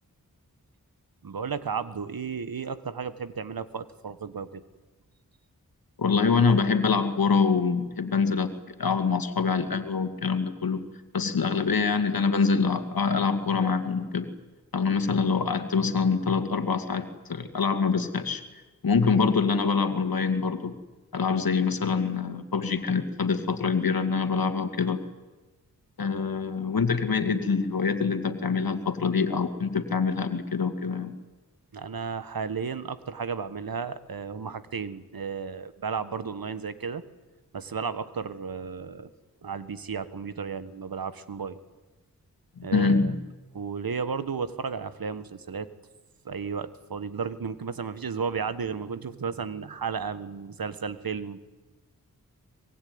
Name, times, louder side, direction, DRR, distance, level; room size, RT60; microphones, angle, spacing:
voice 1, 1.2-4.6 14.9-15.1 26.1-26.3 31.7-37.0 37.5-39.1 39.4-41.6 42.6-43.2 43.5-45.7 46.2-51.4, right 6 dB, 70° right, 13 dB, 1.6 m, -33 dB
voice 2, 6.0-8.5 8.8-10.9 11.1-14.3 14.7-18.4 18.8-20.7 21.1-25.0 26.0-31.2 42.6-43.2, left 5 dB, 75° left, 8 dB, 2.3 m, -25 dB
24.0 x 21.0 x 9.6 m, 1.2 s
cardioid pair, 45°, 36 cm